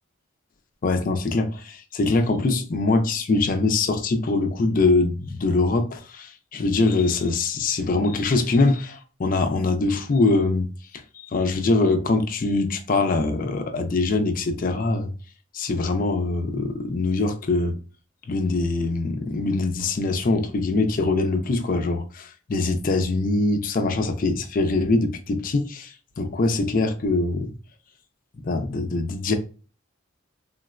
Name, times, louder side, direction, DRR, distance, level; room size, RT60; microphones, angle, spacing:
voice 1, 0.8-10.7 11.1-15.1 15.5-17.8 18.3-27.5 28.4-29.3, left 3 dB, 40° left, 0.4 m, -23 dB
3.6 x 2.1 x 2.4 m
head